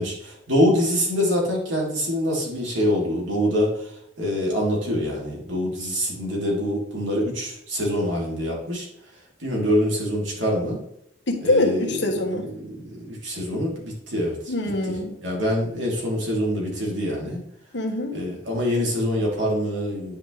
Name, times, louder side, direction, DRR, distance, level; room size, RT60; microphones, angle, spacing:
voice 1, 0.0-3.9 4.2-8.9 9.4-10.8 11.4-12.1 12.4-14.5 14.9-15.0 15.2-17.4 18.1-20.2, equal, 85° right, -2 dB, 3.2 m, -25 dB
voice 2, 11.3-12.5 14.5-15.2 17.7-18.2, left 1 dB, 70° left, 3 dB, 1.5 m, -24 dB
10.0 x 5.4 x 3.3 m, 0.75 s
head